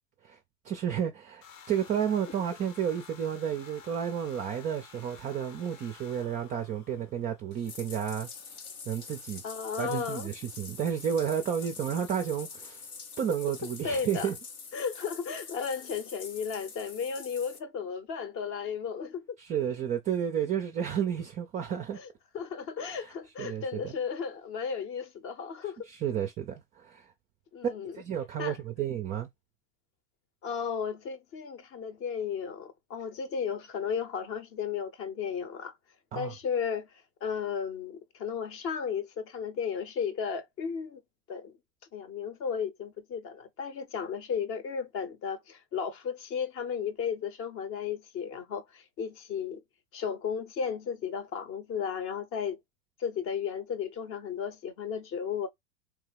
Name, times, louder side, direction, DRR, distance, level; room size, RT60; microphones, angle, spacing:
voice 1, 0.6-8.3 8.9-9.4 9.8-12.8 13.2-14.4 19.4-22.0 22.8-23.1 23.4-23.9 25.9-27.1 28.0-29.3 36.1-36.3, right 8 dB, 20° right, 0.4 m, -31 dB
sound 1, 1.4-7.6, left 6 dB, 65° left, 1.0 m, -52 dB
Bathtub (filling or washing), 7.5-17.6, left 5 dB, 85° left, 1.0 m, -45 dB
voice 2, 9.4-10.3 13.8-14.3 14.7-19.2 21.9-22.1 22.3-25.9 27.5-28.0 28.4-28.6 30.4-35.7 36.1-36.9 37.2-41.0 41.3-41.6 41.9-49.6 49.9-52.6 53.0-55.5, left 6 dB, 30° left, 0.7 m, -34 dB
3.6 x 3.3 x 3.3 m
figure-of-eight pair, 90°, 43 cm